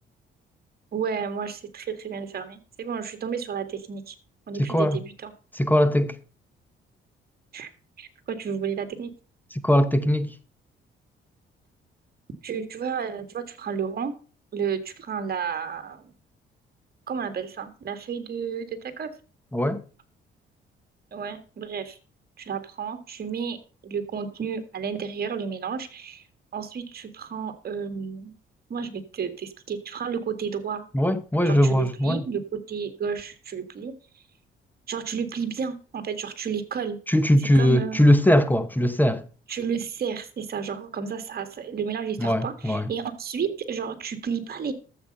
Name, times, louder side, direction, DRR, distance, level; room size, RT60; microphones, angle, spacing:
voice 1, 0.9-4.1 4.5-5.3 7.5-7.7 8.0-9.1 12.4-14.1 14.5-16.1 17.1-19.1 21.1-22.0 22.4-26.2 26.5-28.3 28.7-30.9 31.4-33.9 34.9-37.0 37.4-38.1 39.5-44.7, right 6 dB, 50° right, 1.9 m, -32 dB
voice 2, 4.6-5.0 5.5-6.2 9.5-10.3 19.5-19.8 30.9-32.3 37.1-39.2 42.2-42.9, equal, 10° left, 0.9 m, -20 dB
12.5 x 7.8 x 5.4 m
cardioid pair, 90°, 20 cm